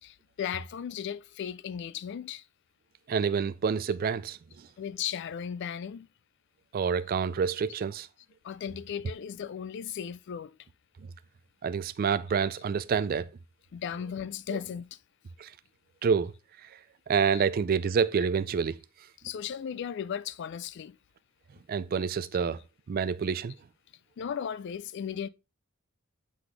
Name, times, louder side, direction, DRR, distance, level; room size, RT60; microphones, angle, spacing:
voice 1, 0.0-2.4 4.8-6.1 8.4-10.5 13.7-15.0 17.3-17.4 19.2-21.0 24.2-25.3, left 8 dB, 55° left, 0.3 m, -36 dB
voice 2, 3.1-4.4 6.7-8.1 11.6-13.3 15.4-15.5 16.0-16.3 17.1-18.8 21.7-22.6 22.9-23.5, right 6 dB, 40° right, 0.3 m, -27 dB
7.6 x 4.0 x 3.3 m
head